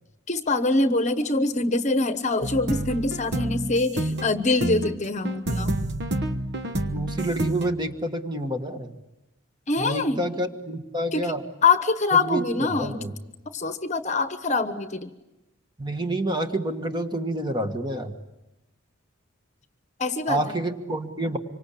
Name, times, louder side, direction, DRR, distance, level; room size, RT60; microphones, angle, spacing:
voice 1, 0.3-5.7 9.7-10.2 11.1-11.3 11.6-13.1 13.5-15.1 20.0-20.6, left 3 dB, 35° left, 10 dB, 1.1 m, -24 dB
sound 1, 2.4-7.7, right 1 dB, 55° right, 1.2 m, -29 dB
voice 2, 6.9-9.0 9.8-11.4 12.1-12.4 12.7-13.1 15.8-18.1 20.3-21.4, right 1 dB, 20° right, 6 dB, 1.5 m, -28 dB
26.0 x 25.0 x 8.5 m, 0.97 s
head